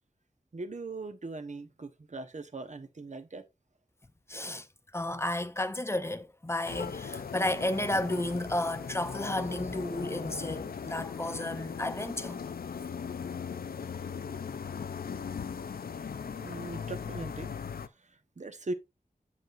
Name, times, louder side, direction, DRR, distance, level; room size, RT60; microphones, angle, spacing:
voice 1, 0.5-3.4 16.4-17.5 18.4-18.7, right 2 dB, 50° right, 1.0 m, -40 dB
voice 2, 4.3-4.7 4.9-12.4, left 1 dB, 15° left, 0.6 m, -32 dB
sound 1, 6.6-17.9, left 6 dB, 85° left, 0.5 m, -38 dB
7.6 x 7.6 x 2.6 m
wide cardioid pair, 55°, 15 cm